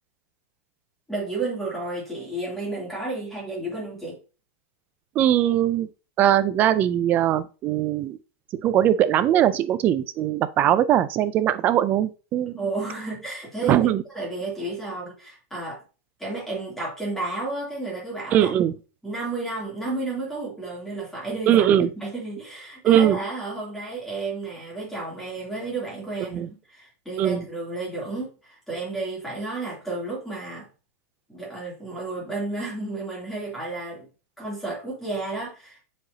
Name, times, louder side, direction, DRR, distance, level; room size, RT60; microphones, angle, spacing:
voice 1, 1.1-4.2 12.6-13.8 14.1-15.8 16.2-18.5 19.0-21.6 22.0-30.7 31.3-34.1 34.4-35.8, right 2 dB, 5° left, 2.9 m, -32 dB
voice 2, 5.2-5.9 6.2-8.2 8.6-12.5 13.7-14.0 18.3-18.7 21.5-21.9 22.8-23.2 26.3-26.5 27.2-27.4, right 11 dB, 20° right, 0.4 m, -20 dB
7.7 x 4.8 x 2.8 m
supercardioid pair, 165°, 8 cm